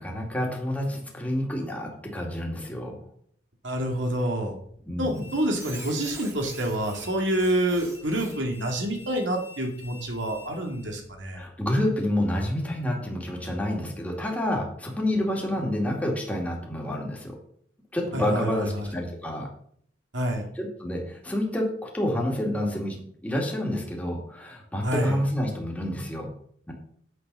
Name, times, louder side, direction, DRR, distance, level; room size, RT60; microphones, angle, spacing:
voice 1, 0.0-3.0 4.9-5.3 11.3-17.4 17.9-19.5 20.6-26.3 26.7-26.8, left 1 dB, 10° left, -1 dB, 2.3 m, -28 dB
voice 2, 3.6-4.5 5.0-11.4 18.1-18.9 20.1-20.4 24.8-25.2, right 1 dB, 75° right, 2 dB, 2.3 m, -27 dB
Squeak, 5.0-11.0, equal, 15° right, 2.4 m, -46 dB
9.5 x 7.9 x 5.5 m, 0.63 s
head